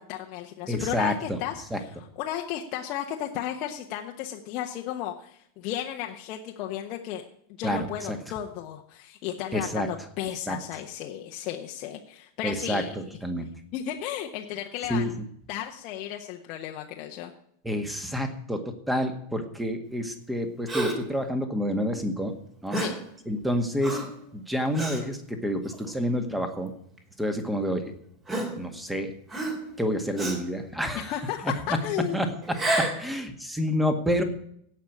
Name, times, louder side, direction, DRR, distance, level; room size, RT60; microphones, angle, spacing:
voice 1, 0.0-7.2 7.6-12.9 13.7-15.2 15.5-17.3 22.7-23.0 30.9-32.3, left 11 dB, 40° left, 1 dB, 1.1 m, -34 dB
voice 2, 0.7-1.4 1.7-1.8 7.6-8.2 9.5-9.9 10.5-10.6 12.4-13.5 14.9-15.1 17.6-22.3 22.6-22.8 23.3-24.0 24.3-26.7 27.2-27.9 28.6-29.1 29.8-31.1 32.1-34.2, equal, 5° right, 7 dB, 1.9 m, -28 dB
Gasp, 20.7-21.1 22.7-23.1 23.8-24.2 24.8-25.0 25.7-25.9 27.0-27.1 28.3-28.9 29.3-29.8 30.2-30.5 32.4-33.1, right 2 dB, 20° right, 2.9 m, -30 dB
17.0 x 5.9 x 8.7 m, 0.69 s
figure-of-eight pair, 90°, 0 cm